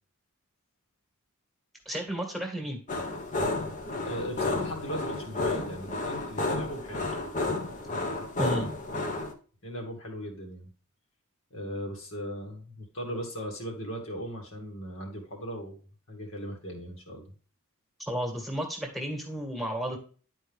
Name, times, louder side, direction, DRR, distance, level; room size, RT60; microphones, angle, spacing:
voice 1, 1.9-2.8 8.4-8.7 18.0-20.0, equal, ahead, 2 dB, 1.9 m, -32 dB
sound 1, 2.9-9.3, left 2 dB, 35° left, 1.1 m, -31 dB
voice 2, 4.0-7.1 9.6-10.7 11.5-15.8 16.1-17.3, equal, 60° left, 1 dB, 2.5 m, -38 dB
11.0 x 4.6 x 3.6 m, 0.39 s
head